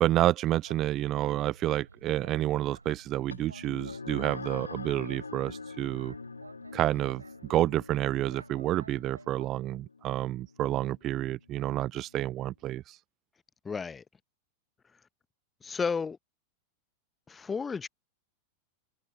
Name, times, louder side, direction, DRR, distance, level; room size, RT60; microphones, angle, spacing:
voice 1, 0.0-6.1 6.7-7.2 7.5-13.0, right 14 dB, 35° right, 0.5 m, -29 dB
Boat Water vehicle, 0.6-9.6, right 3 dB, 80° right, 4.4 m, -53 dB
sound 1, 3.3-12.2, left 4 dB, 75° left, 1.6 m, -45 dB
voice 2, 13.6-14.0 15.6-16.2 17.3-17.9, left 5 dB, 15° left, 0.8 m, -32 dB
figure-of-eight pair, 90°, 0 cm